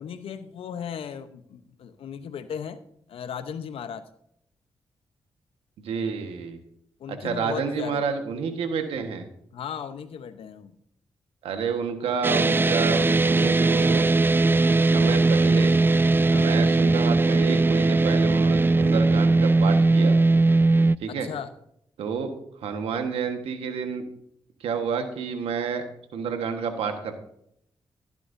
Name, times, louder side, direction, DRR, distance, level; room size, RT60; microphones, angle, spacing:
voice 1, 0.0-2.8 3.1-4.0 7.0-8.0 9.5-10.8 16.2-16.5 21.1-21.5, left 7 dB, 75° left, 11 dB, 0.9 m, -36 dB
voice 2, 5.8-6.6 7.1-9.3 11.4-14.1 14.7-15.7 16.4-20.2 21.0-21.3 22.0-22.3 22.6-24.0 24.6-25.8 26.1-27.1, right 6 dB, 85° right, 6 dB, 1.4 m, -29 dB
sound 1, 12.2-21.0, right 3 dB, 20° right, 0.3 m, -19 dB
15.0 x 10.5 x 2.7 m, 0.72 s
supercardioid pair, 45°, 10 cm